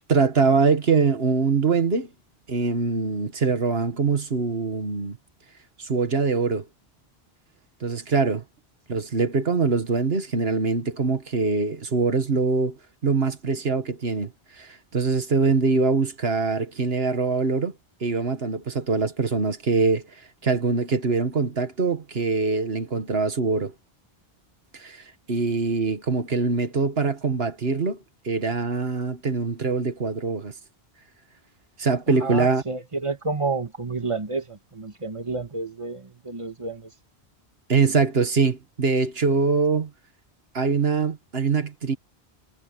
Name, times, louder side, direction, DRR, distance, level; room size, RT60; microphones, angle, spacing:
voice 1, 0.1-2.1 2.5-5.2 5.8-6.7 7.8-8.4 8.9-12.8 13.0-14.3 14.6-17.7 18.0-20.0 20.4-23.7 24.7-28.0 28.2-30.5 31.8-32.6 37.7-39.9 40.5-42.0, right 4 dB, 70° right, 1.8 m, -23 dB
voice 2, 32.2-36.9, right 3 dB, 30° right, 2.0 m, -30 dB
omnidirectional pair, 1.1 m